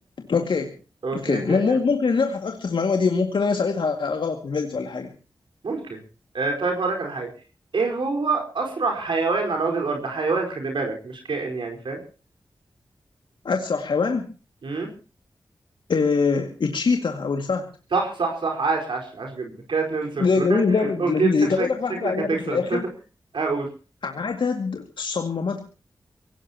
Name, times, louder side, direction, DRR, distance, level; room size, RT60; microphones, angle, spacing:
voice 1, 0.3-0.7 1.1-5.1 13.4-14.3 15.9-17.7 20.2-22.8 24.0-25.6, left 4 dB, 80° left, 4 dB, 2.1 m, -23 dB
voice 2, 1.0-1.8 5.6-6.0 6.3-7.3 7.7-12.0 14.6-14.9 17.9-21.7 22.0-22.8 23.3-23.7, right 4 dB, 80° right, 2 dB, 4.7 m, -26 dB
24.0 x 17.5 x 2.9 m, 0.35 s
cardioid pair, 60°, 8 cm